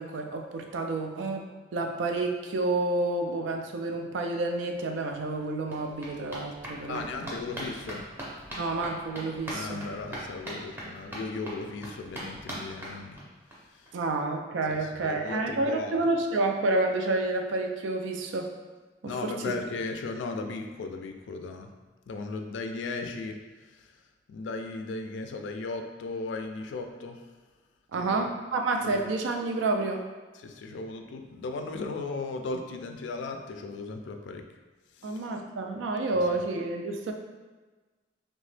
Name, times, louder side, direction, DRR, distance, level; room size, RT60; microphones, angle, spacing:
voice 1, 0.0-1.4 1.7-7.0 8.6-9.8 13.9-18.5 19.0-19.3 27.9-30.0 35.0-37.1, right 2 dB, 90° right, 3 dB, 0.4 m, -29 dB
sound 1, 4.8-4.9 5.1-13.6 13.9-14.0 14.2-14.3 14.6-14.7, equal, 10° right, 0.5 m, -41 dB
voice 2, 6.9-8.1 9.5-13.3 13.5-14.0 14.7-16.1 19.0-21.7 22.1-24.0 24.3-27.3 28.0-28.3 28.8-29.0 30.3-34.5 34.9-35.2, left 3 dB, 75° left, 5 dB, 0.3 m, -36 dB
2.8 x 2.1 x 3.2 m, 1.3 s
head